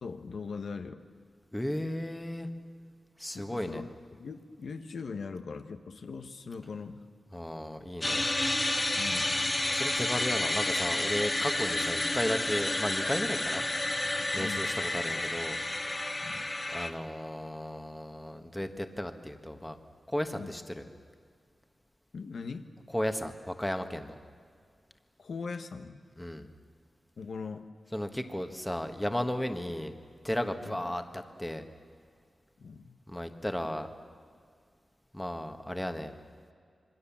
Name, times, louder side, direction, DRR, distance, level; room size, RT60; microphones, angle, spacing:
voice 1, 0.0-1.0 3.3-7.0 9.0-9.4 14.4-14.7 16.2-16.4 20.4-20.5 22.1-22.7 25.2-26.0 27.2-27.7 30.6-30.7 32.6-33.0, left 5 dB, 80° left, 7 dB, 1.3 m, -40 dB
voice 2, 1.5-2.5 3.2-3.8 7.3-8.3 9.7-13.6 14.3-15.6 16.7-19.8 20.1-20.9 22.9-24.1 26.2-26.5 27.9-29.9 30.2-31.7 33.1-33.9 35.1-36.1, left 1 dB, 10° left, 7 dB, 1.3 m, -34 dB
sound 1, 8.0-16.9, left 2 dB, 25° left, 1.5 m, -30 dB
27.0 x 23.5 x 7.3 m, 2.1 s
wide cardioid pair, 140°, 0 cm